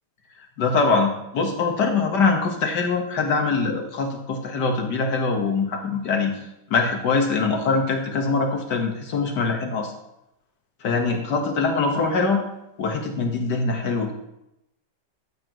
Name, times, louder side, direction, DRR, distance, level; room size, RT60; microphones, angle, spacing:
voice 1, 0.6-6.4 6.7-9.9 10.8-12.4 12.8-14.1, left 4 dB, 70° left, 3 dB, 2.0 m, -23 dB
13.0 x 8.6 x 3.1 m, 0.86 s
omnidirectional pair, 1.9 m